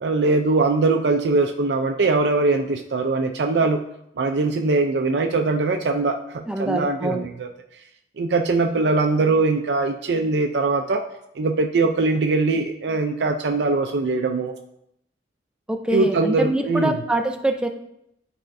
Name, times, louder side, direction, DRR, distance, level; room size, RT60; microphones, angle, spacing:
voice 1, 0.0-3.8 4.2-7.5 8.2-11.0 11.4-14.5 15.9-17.0, right 3 dB, 70° right, 4 dB, 0.4 m, -21 dB
voice 2, 6.5-7.3 15.7-17.7, right 1 dB, 5° right, 5 dB, 0.5 m, -24 dB
11.5 x 4.3 x 2.6 m, 0.79 s
head